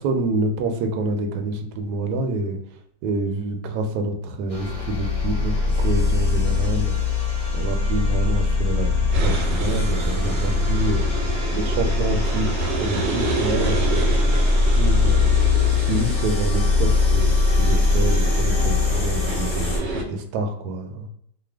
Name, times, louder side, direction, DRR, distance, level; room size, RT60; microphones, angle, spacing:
voice 1, 0.0-2.6 3.0-7.0 7.5-11.1 11.5-14.2 14.7-15.3 15.7-21.1, right 2 dB, 75° right, 5 dB, 1.1 m, -27 dB
sound 1, 4.5-19.8, left 3 dB, 40° left, 1.0 m, -21 dB
sound 2, 9.1-20.0, right 2 dB, 90° right, 1.4 m, -28 dB
3.2 x 2.1 x 3.3 m, 0.70 s
omnidirectional pair, 1.9 m